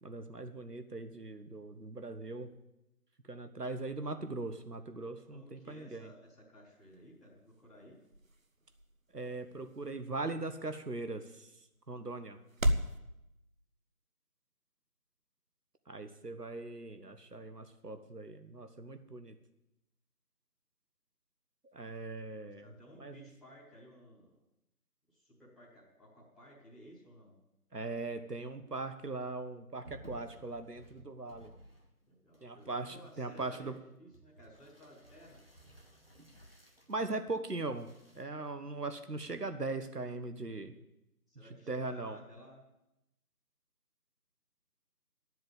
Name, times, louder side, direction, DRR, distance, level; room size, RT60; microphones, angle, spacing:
voice 1, 0.0-2.5 3.3-6.1 9.1-11.5 11.9-12.4 15.9-19.3 21.6-22.7 23.0-23.3 27.7-31.5 32.4-33.7 36.9-37.9 38.1-40.7 41.7-42.2, right 3 dB, 80° right, 9 dB, 1.4 m, -40 dB
voice 2, 5.2-8.0 22.4-24.4 25.1-27.4 32.1-35.5 41.3-42.6, equal, ahead, -12 dB, 1.5 m, -57 dB
sound 1, 6.7-13.0, equal, 60° right, 1.1 m, -39 dB
sound 2, 29.8-32.1 32.3-37.0 37.6-38.2, equal, 40° right, 1.5 m, -57 dB
12.0 x 7.8 x 8.9 m, 0.90 s
figure-of-eight pair, 175°, 46 cm